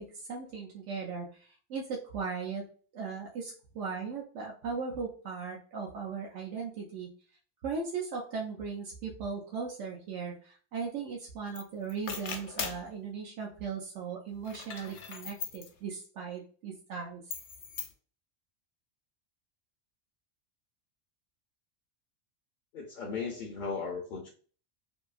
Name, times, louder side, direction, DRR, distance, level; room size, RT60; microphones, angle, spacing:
voice 1, 0.0-2.6 2.9-7.1 7.6-17.2, right 5 dB, 80° right, -2 dB, 0.9 m, -38 dB
sound 1, 11.5-11.6 11.9-12.9 14.4-15.7 17.3-17.9, left 6 dB, 75° left, 0.9 m, -39 dB
voice 2, 22.7-24.3, left 5 dB, 60° left, 0 dB, 0.5 m, -36 dB
2.7 x 2.5 x 2.3 m, 0.42 s
omnidirectional pair, 1.2 m